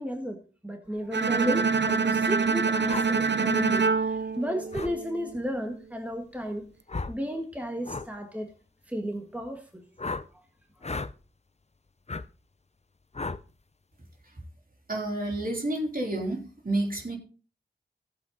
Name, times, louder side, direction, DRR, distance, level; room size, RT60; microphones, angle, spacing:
voice 1, 0.0-6.7 7.1-8.5 8.9-9.8, equal, 5° right, 1.6 m, -33 dB
Bowed string instrument, 1.1-5.3, right 5 dB, 70° right, 0.6 m, -26 dB
sound 1, 2.9-3.1 4.7-4.9 6.9-7.2 7.8-8.1 10.0-10.3 10.8-11.1 12.1-12.2 13.1-13.4, left 3 dB, 35° left, 0.6 m, -33 dB
voice 2, 14.9-17.2, right 1 dB, 50° right, 3.5 m, -30 dB
15.0 x 7.9 x 3.9 m
wide cardioid pair, 55°, 19 cm